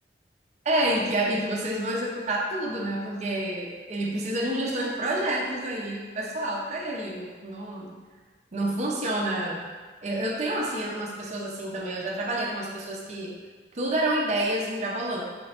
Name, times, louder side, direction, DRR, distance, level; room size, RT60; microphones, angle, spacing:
voice 1, 0.6-7.9 8.5-9.7 10.0-13.3 13.7-15.2, right 1 dB, 40° right, -2 dB, 0.5 m, -28 dB
4.2 x 3.0 x 2.8 m, 1.4 s
head